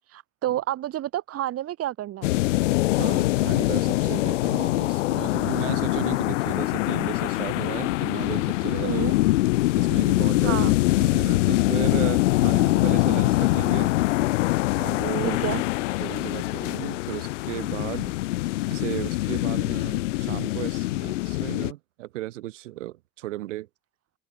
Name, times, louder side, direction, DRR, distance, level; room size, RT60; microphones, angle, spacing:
voice 1, 0.1-2.3 8.8-9.1 10.4-10.7 15.2-15.6, right 13 dB, 40° right, 1.0 m, -29 dB
sound 1, 2.2-21.7, left 18 dB, 80° left, 0.8 m, -24 dB
voice 2, 3.0-9.0 9.7-10.7 11.0-13.9 14.8-15.4 16.0-18.1 18.7-23.7, right 16 dB, 80° right, 2.2 m, -35 dB
open air
hypercardioid pair, 75°, 37 cm